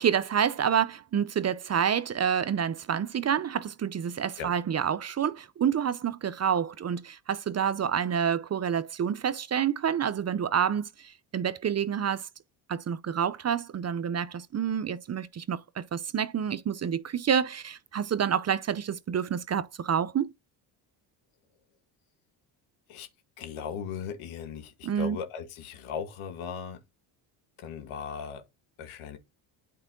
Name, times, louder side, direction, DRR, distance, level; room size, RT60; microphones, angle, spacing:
voice 1, 0.0-12.3 12.7-20.3 24.8-25.2, right 8 dB, 30° right, 0.6 m, -28 dB
voice 2, 23.4-26.8 27.6-28.5 28.8-29.2, left 7 dB, 75° left, 1.8 m, -37 dB
8.7 x 4.6 x 3.7 m
supercardioid pair, 75°, 49 cm